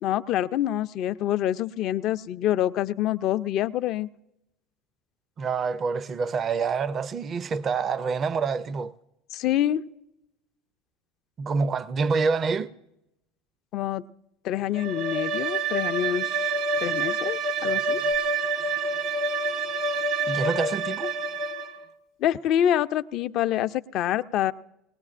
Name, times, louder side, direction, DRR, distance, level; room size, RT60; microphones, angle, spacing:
voice 1, 0.0-4.1 9.3-9.8 13.7-14.0 14.4-16.5 16.8-18.0 22.2-24.5, left 11 dB, 55° left, 0.4 m, -26 dB
voice 2, 5.4-8.9 11.4-12.7 20.3-21.1, right 5 dB, 40° right, 0.4 m, -27 dB
Bowed string instrument, 14.7-21.8, right 3 dB, 65° right, 0.9 m, -27 dB
20.0 x 18.5 x 2.5 m
hypercardioid pair, 85°, 0 cm